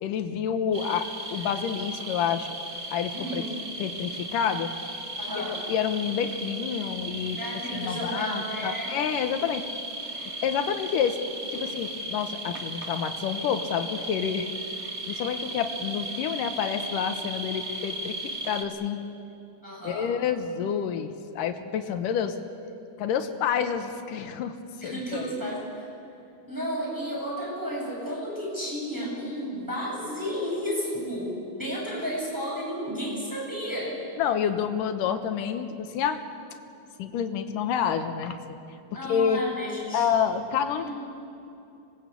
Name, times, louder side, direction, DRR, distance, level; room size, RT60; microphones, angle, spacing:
voice 1, 0.0-2.5 2.9-3.4 3.8-4.7 5.4-7.4 7.7-9.6 10.4-11.2 11.5-14.5 15.1-19.0 19.8-22.4 23.0-24.5 24.8-25.2 34.2-36.2 37.0-38.6 39.1-39.4 39.9-40.9, left 8 dB, 65° left, 8 dB, 2.4 m, -28 dB
sound 1, 0.7-18.6, right 1 dB, 45° right, 0.8 m, -36 dB
voice 2, 3.1-3.6 5.2-5.6 7.4-9.0 19.6-20.1 24.8-25.9 26.5-34.0 38.9-40.1 40.7-40.9, equal, 5° right, -4 dB, 7.5 m, -32 dB
26.0 x 20.0 x 8.4 m, 2.7 s
omnidirectional pair, 4.5 m